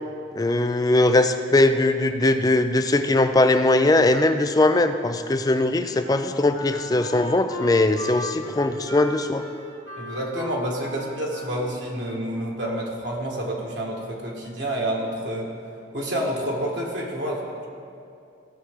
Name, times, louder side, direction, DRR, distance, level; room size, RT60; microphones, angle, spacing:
voice 1, 0.3-9.4, left 2 dB, 20° left, 8 dB, 0.4 m, -20 dB
Wind instrument woodwind instrument, 6.0-12.8, left 1 dB, 70° left, 1.5 m, -37 dB
voice 2, 10.0-15.5 15.9-17.7, right 1 dB, 65° right, -2 dB, 1.5 m, -29 dB
16.5 x 6.3 x 3.6 m, 2.6 s
head